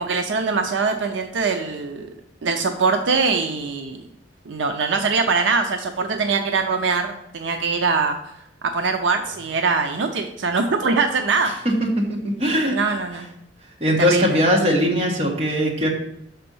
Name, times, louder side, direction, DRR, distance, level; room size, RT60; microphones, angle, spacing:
voice 1, 0.0-2.1 2.4-4.0 4.5-8.2 8.6-11.5 12.7-13.3 14.1-14.4, right 4 dB, 75° right, 5 dB, 0.5 m, -22 dB
voice 2, 11.6-12.8 13.8-15.9, equal, 30° right, -2 dB, 1.4 m, -20 dB
6.0 x 4.4 x 5.3 m, 0.80 s
head